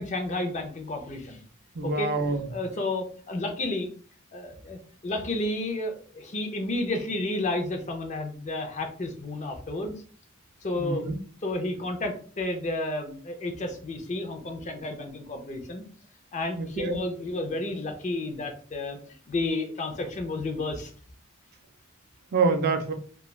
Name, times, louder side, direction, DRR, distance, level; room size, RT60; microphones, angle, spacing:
voice 1, 0.0-1.4 1.8-2.1 2.5-3.9 4.3-9.9 10.6-11.1 11.4-15.8 16.3-19.0 19.3-20.9, left 2 dB, 35° left, 4 dB, 0.5 m, -31 dB
voice 2, 1.8-2.5 10.8-11.2 16.6-17.0 22.3-22.9, right 4 dB, 50° right, 6 dB, 0.4 m, -26 dB
3.1 x 2.3 x 2.3 m, 0.44 s
head